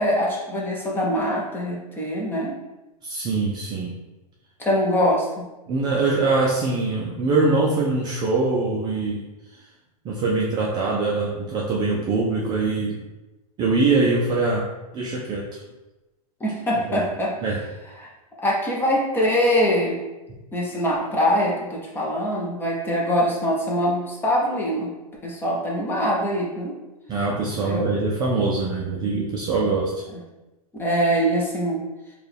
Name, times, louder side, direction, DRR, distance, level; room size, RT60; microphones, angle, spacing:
voice 1, 0.0-2.5 4.6-5.4 16.4-17.3 18.0-18.1 18.4-20.0 20.5-24.9 25.2-26.7 27.6-27.8 30.1-30.2 30.8-31.8, equal, 10° left, -3 dB, 0.7 m, -23 dB
voice 2, 3.0-4.0 5.7-9.3 10.0-13.0 13.6-14.7 14.9-15.6 16.9-17.0 17.4-17.6 27.1-30.0, right 3 dB, 20° right, -3 dB, 0.4 m, -23 dB
4.5 x 2.3 x 3.3 m, 1.1 s
hypercardioid pair, 140°, 19 cm